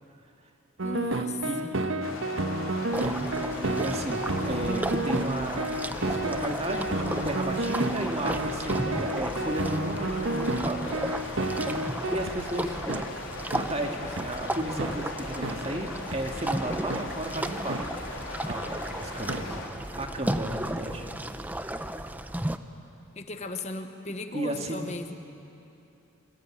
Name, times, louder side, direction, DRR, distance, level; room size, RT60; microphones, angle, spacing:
voice 1, 0.8-1.8 23.1-25.1, left 2 dB, 35° left, 6 dB, 1.1 m, -36 dB
sound 1, 0.8-12.4 12.9-13.0 13.5-13.7 14.2-14.3 14.8-14.9 15.4-15.6 16.1-16.2 16.9-17.0 17.7-17.8 18.5-18.6 19.3-19.4, right 2 dB, 80° right, 1.4 m, -30 dB
voice 2, 1.4-2.2 3.5-5.7 6.0-12.8 13.6-17.8 18.4-19.6 20.0-21.1 24.3-24.8, right 1 dB, 30° right, 3 dB, 2.1 m, -34 dB
sound 2, 2.0-19.7, left 2 dB, 85° left, 3.9 m, -40 dB
sound 3, 2.9-22.6, right 1 dB, 10° right, 0.7 m, -35 dB
26.0 x 24.0 x 8.9 m, 2.8 s
head